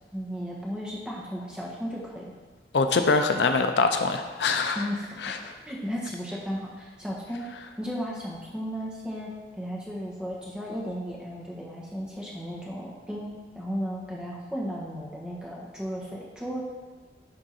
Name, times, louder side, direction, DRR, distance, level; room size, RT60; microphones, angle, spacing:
voice 1, 0.1-2.2 4.7-5.3 5.7-16.6, equal, 5° right, -5 dB, 1.3 m, -35 dB
voice 2, 2.7-4.8 5.2-5.5, left 4 dB, 75° left, 7 dB, 0.5 m, -24 dB
11.0 x 3.7 x 4.1 m, 1.3 s
head